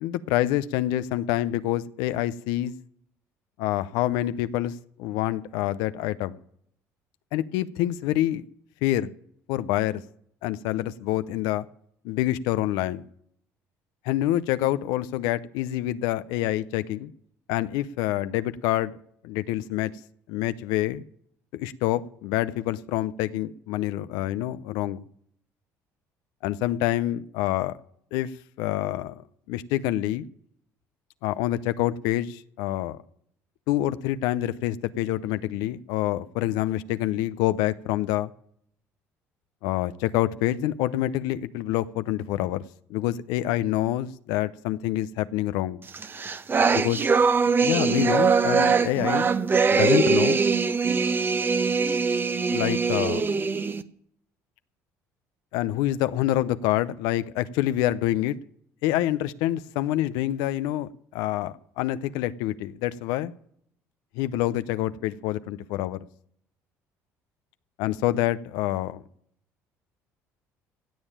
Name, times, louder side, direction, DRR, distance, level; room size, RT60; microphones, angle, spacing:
voice 1, 0.0-2.7 3.6-4.7 5.0-6.4 7.3-8.4 8.8-9.1 9.5-10.0 10.4-11.7 12.0-13.0 14.1-17.1 17.5-19.0 19.2-19.9 20.3-21.0 21.5-25.0 26.4-27.8 28.1-28.3 28.6-29.2 29.5-30.2 31.2-33.0 33.7-38.3 39.6-42.6 42.9-45.8 46.7-47.0 47.6-49.3 49.7-50.4 52.5-53.3 55.5-58.4 58.8-63.3 64.2-66.0 67.8-69.0, left 14 dB, 80° left, 14 dB, 0.6 m, -26 dB
sound 1, 45.9-53.8, right 5 dB, 30° right, 0.8 m, -22 dB
16.5 x 7.2 x 8.8 m, 0.67 s
supercardioid pair, 80°, 7 cm